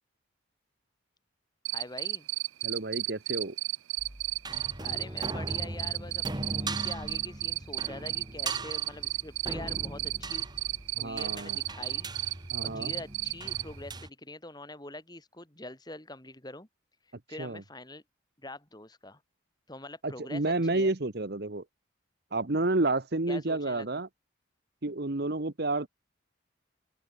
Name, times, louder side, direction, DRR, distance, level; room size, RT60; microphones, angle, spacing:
Cricket, 1.6-13.6, right 19 dB, 80° right, 0.4 m, -32 dB
voice 1, 1.7-2.3 4.8-10.5 11.0-12.1 12.6-16.7 17.3-18.0 18.4-19.2 19.7-20.9 23.3-24.0, left 2 dB, 20° left, 3.6 m, -44 dB
voice 2, 2.6-3.5 11.0-11.6 12.5-12.9 17.4-17.6 20.0-21.6 22.3-24.1 24.8-25.9, right 2 dB, 55° right, 1.2 m, -30 dB
sound 1, 4.0-14.1, right 2 dB, 20° right, 1.8 m, -39 dB
open air
head